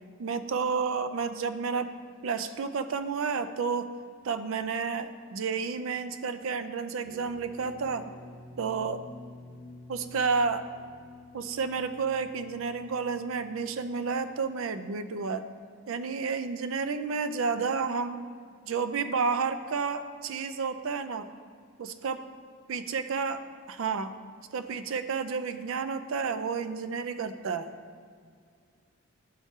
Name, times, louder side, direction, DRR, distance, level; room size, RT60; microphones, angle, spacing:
voice 1, 0.2-1.9 2.2-3.9 4.2-8.1 8.6-9.0 9.9-10.7 11.3-15.4 15.9-18.2 18.7-21.3 21.8-22.3 22.7-24.2 24.5-27.7, right 5 dB, 70° right, 10 dB, 0.4 m, -31 dB
sound 1, 7.0-14.3, left 2 dB, 15° right, 0.8 m, -49 dB
11.0 x 4.2 x 3.6 m, 2.1 s
head